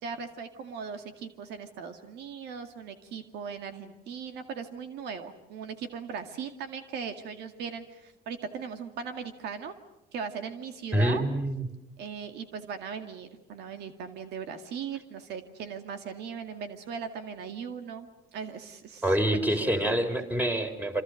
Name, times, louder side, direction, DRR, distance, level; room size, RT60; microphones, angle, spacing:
voice 1, 0.0-9.7 10.1-11.2 12.0-19.0 19.5-19.9, right 6 dB, 80° right, 7 dB, 2.1 m, -38 dB
voice 2, 10.9-11.7 19.0-21.0, right 1 dB, 10° right, 6 dB, 3.9 m, -26 dB
27.5 x 25.5 x 6.5 m, 0.94 s
cardioid pair, 110°, 17 cm